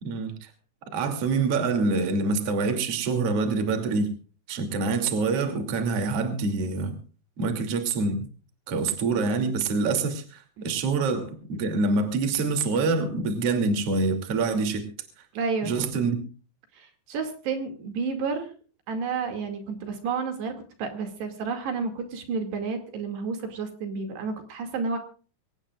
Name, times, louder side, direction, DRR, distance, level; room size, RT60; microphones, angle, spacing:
voice 1, 0.0-0.5 0.9-4.1 4.5-7.0 7.4-8.3 8.7-14.8 15.6-16.2, right 4 dB, 40° right, 6 dB, 3.2 m, -26 dB
voice 2, 15.3-15.8 16.7-18.5 18.9-25.0, right 5 dB, 70° right, 5 dB, 4.4 m, -31 dB
25.0 x 18.0 x 2.4 m, 0.38 s
omnidirectional pair, 5.1 m